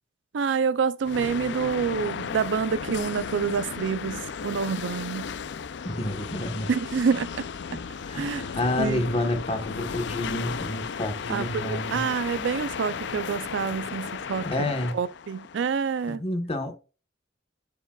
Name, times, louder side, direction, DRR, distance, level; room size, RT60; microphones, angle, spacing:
voice 1, 0.3-5.3 6.7-7.5 8.1-8.4 8.8-9.0 11.3-14.7 14.9-16.2, right 6 dB, 75° right, 0.4 m, -27 dB
sound 1, 1.0-16.1, left 6 dB, 70° left, 0.4 m, -35 dB
voice 2, 5.8-6.7 7.7-7.8 8.1-12.0 14.4-14.9 16.1-16.8, left 1 dB, 35° left, 1.2 m, -29 dB
11.0 x 4.8 x 2.3 m
head